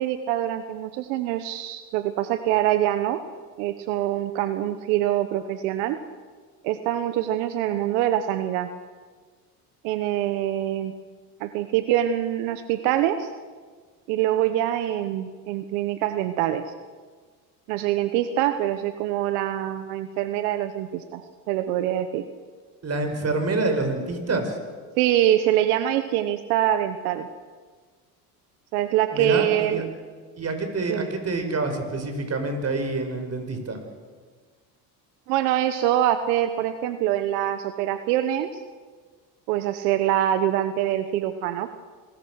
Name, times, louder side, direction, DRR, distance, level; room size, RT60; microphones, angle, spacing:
voice 1, 0.0-3.2 3.6-6.0 6.6-8.7 9.8-10.9 11.4-13.3 14.1-16.6 17.7-22.2 25.0-27.3 28.7-29.9 30.9-31.1 35.3-38.5 39.5-41.7, right 12 dB, 85° right, 10 dB, 1.3 m, -24 dB
voice 2, 22.8-24.6 29.1-29.8 30.4-33.8, right 3 dB, 35° right, 6 dB, 5.6 m, -27 dB
27.5 x 20.5 x 6.4 m, 1.5 s
supercardioid pair, 90°, 45 cm